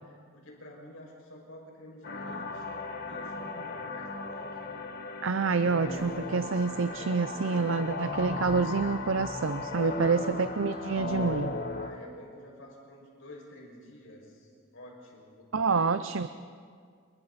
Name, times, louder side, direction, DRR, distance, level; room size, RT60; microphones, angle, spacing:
voice 1, 0.0-4.7 9.8-10.5 11.8-15.9 16.2-16.3, left 1 dB, 75° left, -2 dB, 6.2 m, -50 dB
sound 1, 2.0-11.9, left 3 dB, 45° left, 1.4 m, -36 dB
voice 2, 5.2-11.5 15.5-16.3, right 4 dB, 70° right, 11 dB, 0.6 m, -27 dB
29.5 x 23.5 x 4.2 m, 2.1 s
head